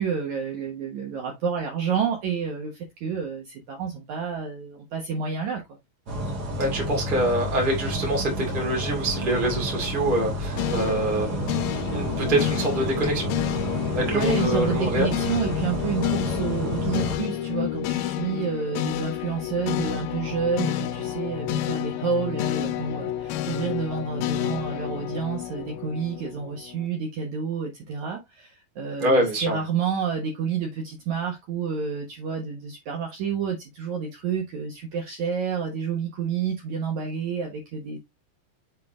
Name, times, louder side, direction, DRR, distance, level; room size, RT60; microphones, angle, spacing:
voice 1, 0.0-5.6 13.8-38.0, right 6 dB, 90° right, 1.6 m, -29 dB
sound 1, 6.1-17.2, right 1 dB, 70° right, 0.9 m, -30 dB
voice 2, 6.6-11.5 11.9-13.3 13.9-15.1 29.0-29.6, right 1 dB, 20° right, 1.3 m, -25 dB
sound 2, 10.6-26.9, left 13 dB, 85° left, 2.8 m, -30 dB
7.6 x 3.6 x 3.5 m
omnidirectional pair, 5.2 m